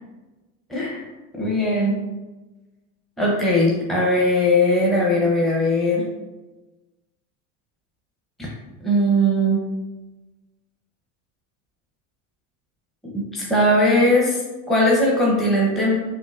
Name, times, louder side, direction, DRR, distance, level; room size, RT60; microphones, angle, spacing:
voice 1, 0.7-1.0 1.3-2.0 3.2-6.0 8.4-8.5 8.8-9.6 13.1-14.4 14.7-15.9, left 1 dB, ahead, -4 dB, 0.8 m, -19 dB
5.3 x 2.7 x 2.4 m, 1.1 s
supercardioid pair, 95°, 44 cm